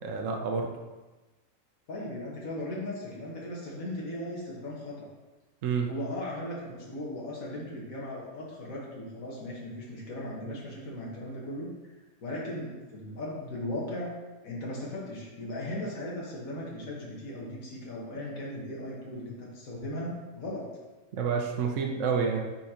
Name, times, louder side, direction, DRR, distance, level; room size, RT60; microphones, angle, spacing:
voice 1, 0.0-0.7 5.6-5.9 21.1-22.4, right 5 dB, 65° right, 1 dB, 1.0 m, -28 dB
voice 2, 1.9-5.1 5.9-11.7 12.2-14.1 14.4-20.6, left 1 dB, 75° left, -4 dB, 1.7 m, -37 dB
10.0 x 4.4 x 2.9 m, 1.2 s
omnidirectional pair, 1.5 m